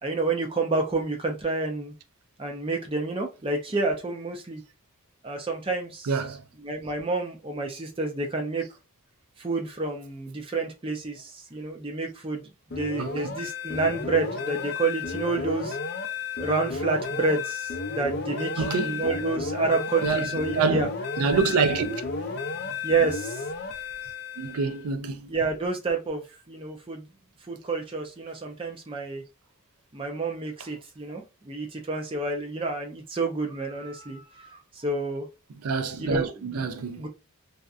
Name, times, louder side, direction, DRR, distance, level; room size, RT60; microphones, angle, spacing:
voice 1, 0.0-1.9 2.4-4.6 5.2-6.1 6.6-8.7 9.4-15.8 16.4-20.9 22.8-23.4 25.3-27.1 27.5-29.2 29.9-35.3 36.0-36.6 37.0-37.1, right 3 dB, 25° right, 0.5 m, -29 dB
voice 2, 6.0-6.4 13.0-13.3 18.6-19.0 20.0-20.3 20.6-20.9 21.2-22.0 24.4-25.3 35.6-37.0, right 4 dB, 80° right, 0.4 m, -26 dB
sound 1, 12.7-24.8, left 4 dB, 45° left, 0.4 m, -33 dB
2.7 x 2.1 x 2.4 m
head